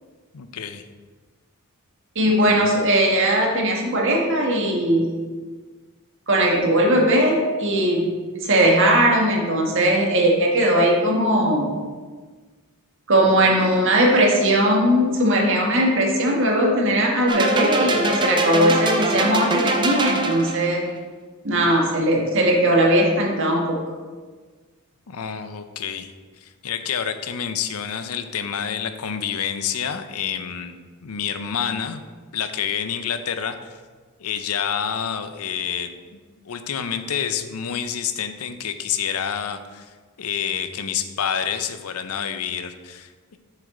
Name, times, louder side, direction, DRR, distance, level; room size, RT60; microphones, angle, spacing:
voice 1, 0.3-0.8 2.2-2.6 25.1-30.8 31.0-32.0 32.3-33.8 34.2-36.2 36.4-43.4, left 8 dB, 85° left, 10 dB, 0.6 m, -28 dB
voice 2, 2.1-5.1 6.3-8.1 8.4-11.7 13.1-20.8 21.4-23.8, right 1 dB, 60° right, -1 dB, 1.5 m, -19 dB
sound 1, 17.3-20.8, right 2 dB, 20° right, 0.6 m, -23 dB
7.2 x 6.6 x 3.8 m, 1.4 s
head